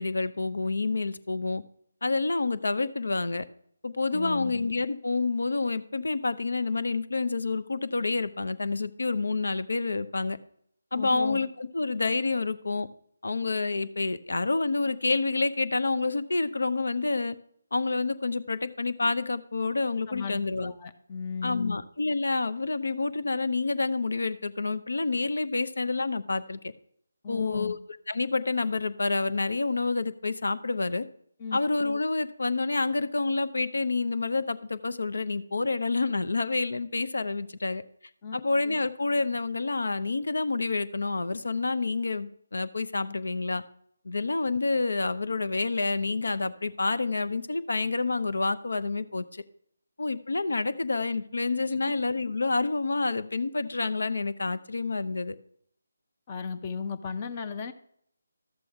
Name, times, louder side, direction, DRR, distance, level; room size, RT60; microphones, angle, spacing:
voice 1, 0.0-1.6 2.0-3.4 3.8-10.4 10.9-12.9 13.2-17.4 17.7-20.7 21.4-26.7 27.3-27.8 28.1-31.0 31.5-37.8 38.3-43.6 44.0-49.4 50.0-55.4, left 3 dB, 65° left, 13 dB, 0.7 m, -28 dB
voice 2, 4.1-4.5 10.9-11.4 20.1-21.8 27.2-27.7 31.4-31.6 38.2-38.4 51.7-51.8 56.3-57.7, left 5 dB, 30° left, 9 dB, 0.7 m, -35 dB
12.5 x 7.7 x 3.5 m, 0.69 s
figure-of-eight pair, 155°, 0 cm